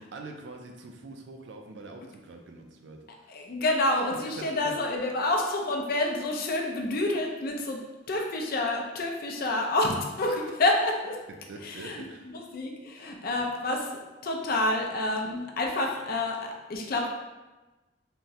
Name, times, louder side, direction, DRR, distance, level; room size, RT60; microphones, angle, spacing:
voice 1, 0.0-3.0 4.1-4.8 11.5-12.3 13.4-13.5, right 2 dB, 70° right, 3 dB, 0.4 m, -44 dB
voice 2, 3.3-7.8 8.1-9.9 10.2-11.2 11.6-12.0 12.3-13.9 14.2-17.1, left 2 dB, 55° left, 1 dB, 0.4 m, -28 dB
3.5 x 2.0 x 2.7 m, 1.1 s
head